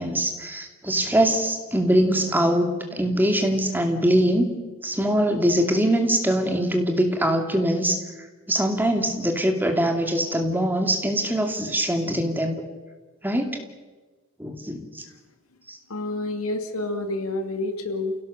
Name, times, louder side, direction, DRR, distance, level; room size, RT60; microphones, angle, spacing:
voice 1, 0.0-4.5 4.8-8.0 8.5-12.6 13.2-13.6 14.4-15.0 15.7-15.8, right 1 dB, 10° right, 4 dB, 2.4 m, -23 dB
voice 2, 15.9-18.2, left 2 dB, 85° left, 7 dB, 2.4 m, -28 dB
30.0 x 17.0 x 6.8 m, 1.3 s
head